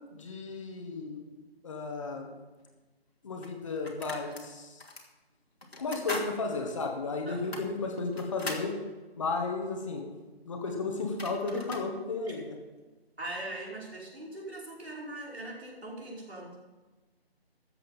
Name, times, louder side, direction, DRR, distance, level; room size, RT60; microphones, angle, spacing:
voice 1, 0.1-1.2 1.6-2.3 3.2-4.8 5.8-8.7 9.2-10.1 10.4-12.5, left 3 dB, 30° left, 2 dB, 1.6 m, -34 dB
sound 1, 2.7-2.8 3.4-4.5 4.8-5.1 5.6-6.3 6.7-6.8 7.4-8.7 10.7-10.8 11.0-11.9, left 2 dB, 75° left, 2.5 m, -40 dB
voice 2, 7.2-7.7 12.3-12.4 13.2-16.5, right 1 dB, 80° right, -3 dB, 5.0 m, -41 dB
13.5 x 8.0 x 5.6 m, 1.2 s
figure-of-eight pair, 155°, 31 cm